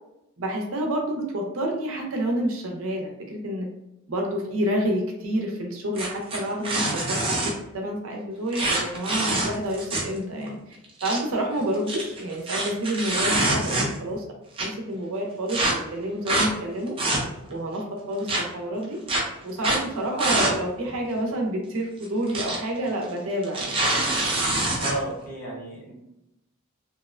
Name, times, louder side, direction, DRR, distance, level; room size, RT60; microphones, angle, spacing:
voice 1, 0.4-3.7 4.1-7.2 7.7-10.8 11.0-14.2 14.6-17.0 17.5-19.0 19.4-23.8, right 1 dB, 80° right, 1 dB, 0.6 m, -28 dB
sound 1, 6.0-7.5 8.5-10.2 10.5-10.6 10.8-11.2 11.7-14.1 14.6-14.7 15.5-15.7 16.3-16.5 16.9-17.5 18.3-18.4 19.1-19.2 19.6-19.8 20.2-20.5 20.9-21.0 22.0-22.6 22.9-23.0 23.4-24.9, right 2 dB, 25° right, 0.4 m, -25 dB
voice 2, 13.4-13.8 24.7-26.0, right 1 dB, 40° left, -5 dB, 0.9 m, -33 dB
2.7 x 2.1 x 2.4 m, 0.89 s
head